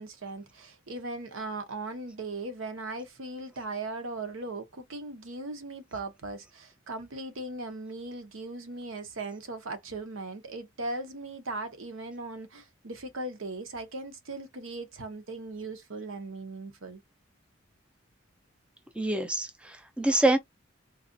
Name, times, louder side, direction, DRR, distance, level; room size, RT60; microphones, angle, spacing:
voice 1, 0.0-17.0, right 2 dB, 75° right, 0.9 m, -38 dB
voice 2, 19.0-20.4, right 1 dB, 5° right, 0.4 m, -26 dB
4.0 x 2.4 x 2.6 m
head